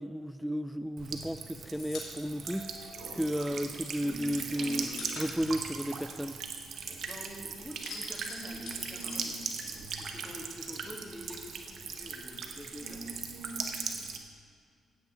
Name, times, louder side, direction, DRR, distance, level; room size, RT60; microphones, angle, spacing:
voice 1, 0.0-2.7 3.1-4.9 5.2-6.4, equal, ahead, 11 dB, 0.4 m, -33 dB
sound 1, 0.7-3.5 3.8-7.1 7.4-10.0 10.3-11.4, left 3 dB, 70° left, 3.2 m, -47 dB
Buzz / Water tap faucet / Trickle dribble, 1.0-14.2, right 5 dB, 70° right, 1.1 m, -39 dB
Train / Sliding door, 1.9-11.9, right 1 dB, 85° right, 2.5 m, -54 dB
voice 2, 7.0-13.0, left 1 dB, 15° left, -1 dB, 2.5 m, -47 dB
15.0 x 9.0 x 3.6 m, 2.3 s
supercardioid pair, 55°, 0 cm